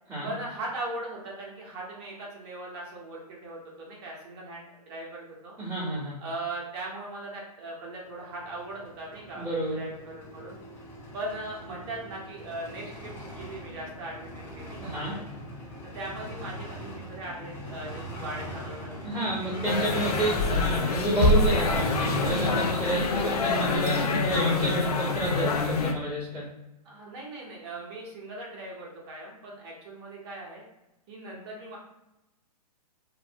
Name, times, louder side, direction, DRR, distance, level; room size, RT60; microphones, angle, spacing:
voice 1, 0.2-5.6 6.2-10.6 11.1-15.2 15.8-18.9 19.4-20.6 26.8-30.6 31.1-31.8, right 2 dB, 40° right, -3 dB, 0.9 m, -39 dB
voice 2, 5.6-6.2 9.3-9.8 14.8-15.1 19.0-26.5, right 2 dB, 10° right, -13 dB, 1.1 m, -30 dB
sound 1, 8.2-22.7, equal, 10° left, 0.5 m, -39 dB
sound 2, 19.6-25.9, left 3 dB, 70° left, 0.4 m, -25 dB
2.5 x 2.1 x 2.7 m, 0.94 s
hypercardioid pair, 125°, 21 cm